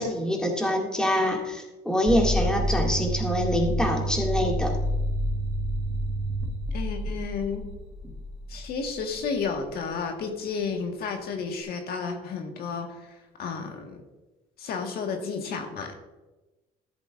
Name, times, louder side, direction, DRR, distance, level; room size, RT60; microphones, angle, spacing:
voice 1, 0.0-4.7, equal, 5° left, 0 dB, 2.2 m, -25 dB
sound 1, 2.1-9.7, equal, 20° right, 1.5 m, -29 dB
voice 2, 6.7-7.6 8.5-12.9 13.4-14.0 14.6-15.9, left 5 dB, 65° left, 3 dB, 1.6 m, -32 dB
14.0 x 7.9 x 2.5 m, 1.1 s
cardioid pair, 110°, 17 cm